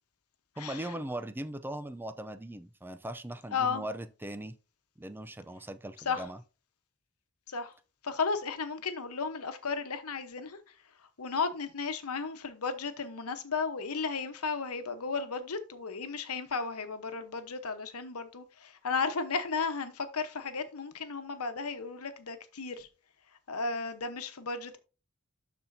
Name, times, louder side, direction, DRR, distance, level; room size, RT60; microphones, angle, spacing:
voice 1, 0.6-4.5 5.0-6.4, right 1 dB, 10° right, 0.5 m, -39 dB
voice 2, 3.5-3.8 6.1-6.2 7.5-7.7 8.0-10.6 11.2-22.9 23.5-24.8, left 4 dB, 80° left, 1.0 m, -34 dB
12.5 x 4.3 x 2.7 m
head